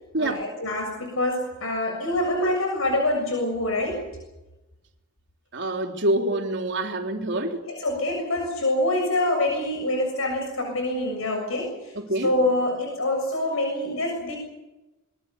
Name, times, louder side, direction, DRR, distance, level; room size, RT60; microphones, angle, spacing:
voice 1, 0.2-4.1 7.3-11.9 12.2-14.4, left 1 dB, 75° left, 7.2 m, -26 dB
voice 2, 5.5-7.7 12.1-12.3, right 1 dB, 60° right, 3.5 m, -26 dB
26.0 x 22.5 x 7.0 m
head